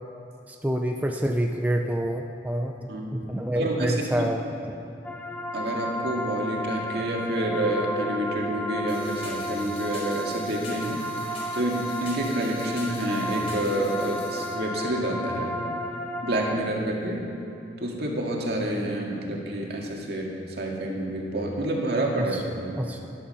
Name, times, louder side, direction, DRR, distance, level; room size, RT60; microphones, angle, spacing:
voice 1, 0.5-2.7 3.1-4.4 22.3-22.4 22.7-23.1, right 1 dB, 10° right, 2 dB, 0.6 m, -27 dB
voice 2, 3.6-4.3 5.5-15.6 16.2-17.2 17.8-22.8, right 1 dB, 60° right, -1 dB, 2.1 m, -28 dB
sound 1, 5.0-16.6, equal, 10° left, 1.0 m, -33 dB
sound 2, 8.9-14.5, left 2 dB, 35° left, 4.0 m, -43 dB
14.0 x 11.5 x 5.7 m, 2.9 s
head